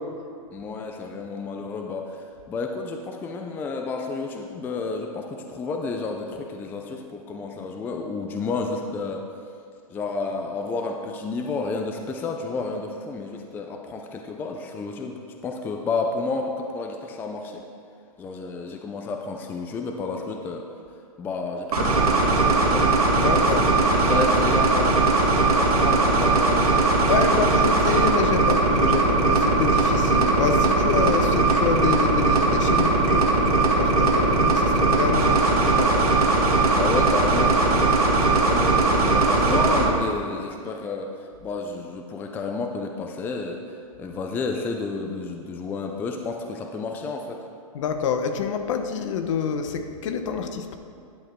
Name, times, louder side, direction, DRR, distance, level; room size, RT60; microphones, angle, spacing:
voice 1, 0.5-9.2 9.9-17.7 18.2-20.7 21.2-22.9 23.4-23.5 23.9-25.0 25.5-27.5 36.7-41.1 41.4-43.6 44.0-47.4, left 3 dB, 10° left, 3 dB, 0.4 m, -31 dB
sound 1, 21.7-39.8, right 3 dB, 90° right, 2.1 m, -19 dB
voice 2, 23.1-23.7 24.1-24.2 27.1-36.1 47.7-50.8, left 6 dB, 55° left, 7 dB, 0.9 m, -27 dB
11.0 x 6.4 x 4.5 m, 2.4 s
hypercardioid pair, 145°, 19 cm